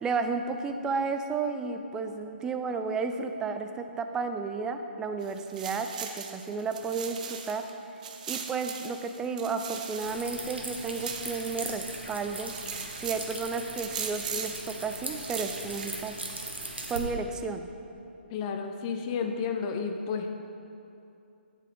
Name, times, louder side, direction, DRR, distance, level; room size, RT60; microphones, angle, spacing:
voice 1, 0.0-7.6 8.3-12.5 13.0-16.2 16.9-17.7, right 4 dB, 10° right, 7 dB, 0.4 m, -32 dB
sound 1, 5.2-7.7 8.0-12.0 12.3-13.3 13.8-14.7 15.1-16.2, right 7 dB, 45° right, 0.8 m, -40 dB
sound 2, 10.0-17.0, right 2 dB, 85° right, 1.4 m, -39 dB
voice 2, 18.3-20.3, left 5 dB, 30° left, 5 dB, 0.6 m, -31 dB
11.0 x 7.4 x 3.8 m, 2.7 s
figure-of-eight pair, 135°, 6 cm